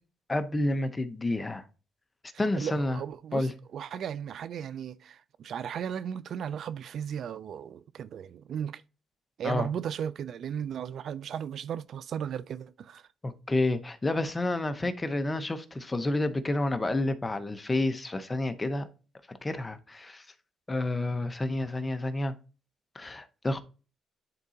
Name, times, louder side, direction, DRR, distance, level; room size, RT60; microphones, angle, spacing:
voice 1, 0.3-1.6 2.4-3.0 3.3-3.5 9.4-9.7 13.2-18.9 19.4-20.2 20.7-22.3 22.9-23.6, left 2 dB, 20° left, 0.8 m, -29 dB
voice 2, 2.4-8.8 9.4-13.0, right 8 dB, 65° right, 0.3 m, -36 dB
10.5 x 3.7 x 2.8 m
cardioid pair, 90°, 0 cm